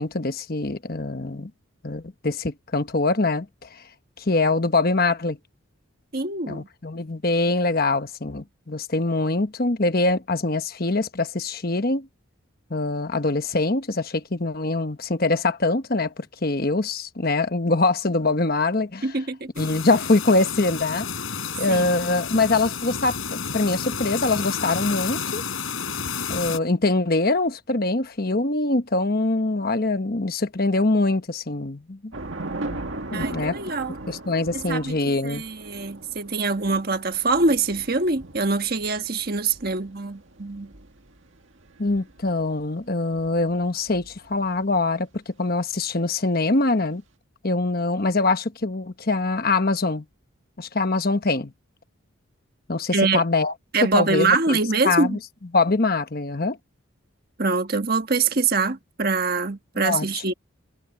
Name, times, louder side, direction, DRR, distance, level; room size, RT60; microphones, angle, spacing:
voice 1, 0.0-1.5 1.8-3.8 4.2-5.4 6.5-12.1 12.7-19.1 19.6-21.1 21.6-25.4 26.3-32.1 32.7-32.8 33.1-33.6 34.1-35.4 41.8-47.0 47.4-50.0 50.6-51.5 52.7-53.5 53.9-54.6 54.8-55.2 55.5-56.6 59.8-60.1, left 2 dB, 45° left, 1.2 m, -23 dB
voice 2, 6.1-6.7 19.0-19.5 21.7-21.9 33.1-34.0 34.5-40.7 52.9-53.2 53.7-55.2 57.4-60.3, right 3 dB, 45° right, 1.5 m, -24 dB
sound 1, 19.6-26.6, left 6 dB, 75° left, 4.4 m, -31 dB
Thunder / Rain, 32.1-44.6, right 2 dB, 65° right, 1.9 m, -39 dB
head